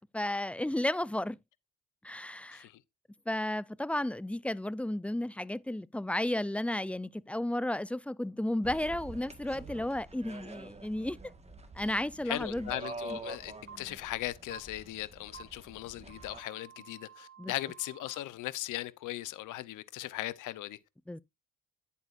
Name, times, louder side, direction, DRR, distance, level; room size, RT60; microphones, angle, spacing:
voice 1, 0.1-1.4 2.0-2.6 3.3-11.2 11.8-12.7 17.4-17.5 21.1-21.2, left 1 dB, 5° left, 0.4 m, -33 dB
sound 1, 8.6-16.4, right 3 dB, 20° right, 1.6 m, -46 dB
voice 2, 12.2-20.8, left 15 dB, 90° left, 0.9 m, -38 dB
sound 2, 12.8-12.9 13.7-13.8 14.5-14.6 15.3-15.4 16.1-18.2, right 7 dB, 40° right, 1.3 m, -51 dB
10.5 x 8.4 x 2.6 m
cardioid pair, 90°, 30 cm